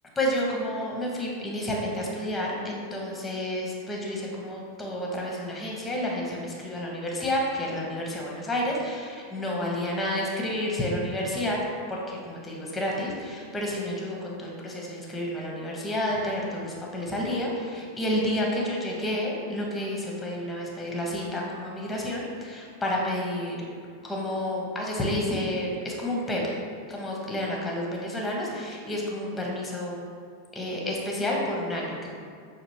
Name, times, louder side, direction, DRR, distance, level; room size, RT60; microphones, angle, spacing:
voice 1, 0.2-11.6 11.9-23.6 24.0-26.4 26.9-30.0 30.5-32.1, left 1 dB, 10° left, -2 dB, 0.9 m, -30 dB
6.0 x 2.4 x 3.2 m, 2.1 s
figure-of-eight pair, 90°, 0 cm